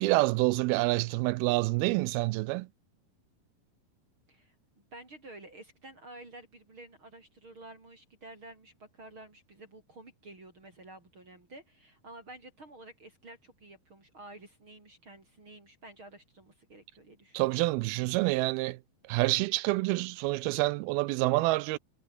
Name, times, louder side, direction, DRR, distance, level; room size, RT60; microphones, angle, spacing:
voice 1, 0.0-2.7 17.3-18.8 19.1-21.8, right 21 dB, 85° right, 2.4 m, -27 dB
voice 2, 4.3-17.6, right 2 dB, 30° right, 5.2 m, -51 dB
omnidirectional pair, 4.4 m